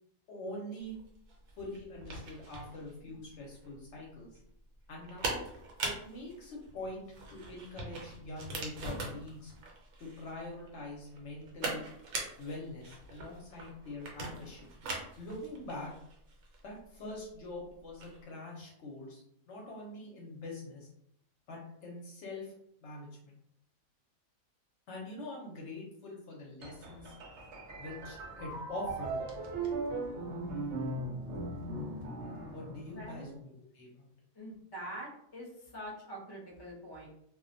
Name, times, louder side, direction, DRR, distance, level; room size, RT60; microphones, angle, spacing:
voice 1, 0.3-0.9 1.6-4.4 4.9-5.4 5.8-9.5 10.0-11.8 12.4-14.7 15.2-15.9 16.6-20.9 21.5-22.5 22.8-23.3 24.9-27.1 27.8-29.2 32.5-34.1, left 2 dB, 65° left, -2 dB, 0.8 m, -44 dB
sound 1, 0.9-18.2, right 3 dB, 90° right, 1.1 m, -42 dB
sound 2, 26.6-33.3, right 2 dB, 65° right, 0.8 m, -39 dB
voice 2, 32.9-33.4 34.3-37.1, right 1 dB, 25° left, -3 dB, 0.5 m, -45 dB
2.4 x 2.1 x 2.5 m, 0.72 s
omnidirectional pair, 1.4 m